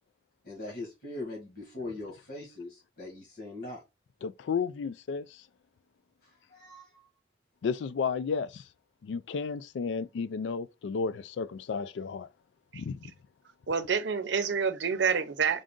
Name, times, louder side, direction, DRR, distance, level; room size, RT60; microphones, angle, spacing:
voice 1, 0.4-3.8 6.2-7.1, left 2 dB, 55° left, 1.5 m, -41 dB
voice 2, 4.2-5.2 7.6-8.6 9.0-12.3 12.7-13.0, left 5 dB, 80° left, 0.3 m, -32 dB
voice 3, 13.7-15.6, right 6 dB, 75° right, 0.6 m, -28 dB
3.8 x 2.5 x 3.6 m
head